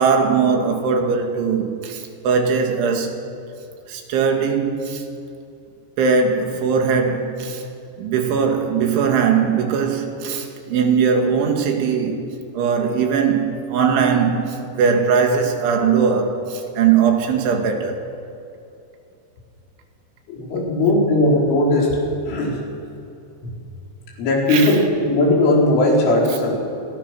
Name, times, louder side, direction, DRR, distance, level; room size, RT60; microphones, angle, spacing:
voice 1, 0.0-3.2 3.9-5.1 6.0-7.6 8.0-12.3 12.5-18.0 24.5-24.8, right 6 dB, 80° right, 4.5 m, -20 dB
voice 2, 20.3-22.0 22.3-22.6 24.2-26.6, left 1 dB, 85° left, 7.2 m, -18 dB
27.0 x 25.0 x 6.2 m
omnidirectional pair, 5.4 m